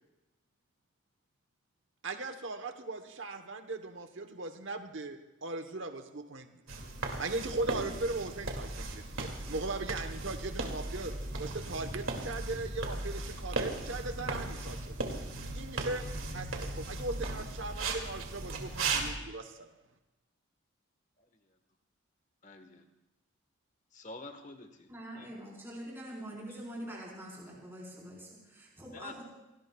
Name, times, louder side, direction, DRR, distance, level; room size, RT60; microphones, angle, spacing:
voice 1, 2.0-6.5 7.2-15.1 15.5-19.7, right 2 dB, 65° right, 7 dB, 1.0 m, -39 dB
sound 1, 6.7-19.1, right 2 dB, 80° right, 2.4 m, -37 dB
voice 2, 22.4-22.8 23.9-24.9 25.2-25.3 28.9-29.2, left 2 dB, 35° left, 6 dB, 1.3 m, -48 dB
voice 3, 24.9-29.2, right 1 dB, 10° right, -5 dB, 4.3 m, -44 dB
29.0 x 18.0 x 2.3 m, 0.98 s
head